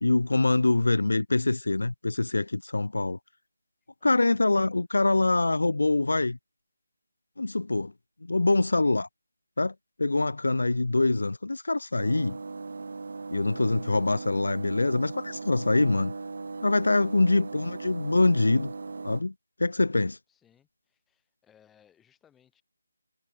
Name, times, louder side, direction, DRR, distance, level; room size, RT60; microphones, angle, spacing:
voice 1, 0.0-3.2 4.0-6.4 7.4-7.9 8.2-9.1 9.6-9.7 10.0-12.4 13.3-16.1 16.6-18.7 19.0-19.3 19.6-20.2, left 2 dB, 85° left, 0.3 m, -24 dB
voice 2, 4.0-4.3 20.3-22.6, left 9 dB, 5° left, 2.3 m, -63 dB
sound 1, 12.0-19.2, right 4 dB, 45° right, 0.8 m, -38 dB
figure-of-eight pair, 175°, 0 cm